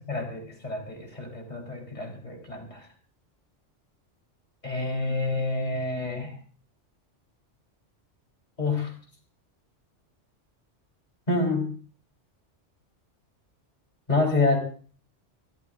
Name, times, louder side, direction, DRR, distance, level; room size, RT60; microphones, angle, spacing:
voice 1, 0.1-2.9 4.6-6.4 8.6-8.9 11.3-11.7 14.1-14.6, left 3 dB, 35° left, 1 dB, 3.8 m, -28 dB
28.5 x 14.0 x 2.5 m, 0.42 s
omnidirectional pair, 1.2 m